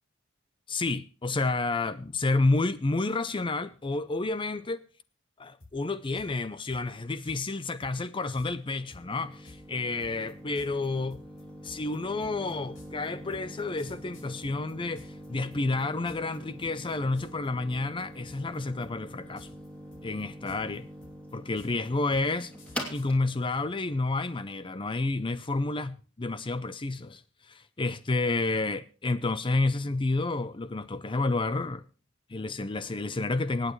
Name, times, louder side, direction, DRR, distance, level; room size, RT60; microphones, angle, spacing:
voice 1, 0.7-4.8 5.4-11.2 11.6-19.5 20.0-20.9 21.3-22.5 22.9-31.8 32.3-33.7, left 3 dB, 25° left, 0.6 m, -30 dB
sound 1, 5.6-5.7 6.1-6.3 6.7-7.4 7.8-7.9 8.3-8.5 8.9-15.3 15.5-16.4 16.6-16.9 17.2-17.5 17.7-18.6 18.8-19.7 19.9-23.1, left 2 dB, 65° left, 5.8 m, -53 dB
sound 2, 7.8-25.3, equal, 5° left, 2.9 m, -45 dB
25.0 x 9.1 x 3.1 m
head